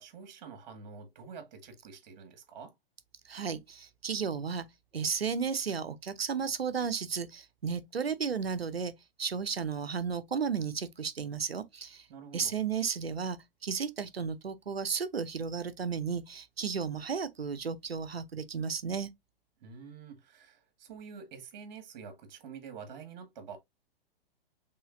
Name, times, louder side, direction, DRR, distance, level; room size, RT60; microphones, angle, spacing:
voice 1, 0.0-2.7 12.1-12.5 19.6-23.6, right 6 dB, 45° right, 1.8 m, -47 dB
voice 2, 3.3-4.6 4.9-8.9 9.2-12.0 12.3-19.1, right 6 dB, 80° right, 0.8 m, -33 dB
5.5 x 3.6 x 2.6 m
figure-of-eight pair, 110°, 30 cm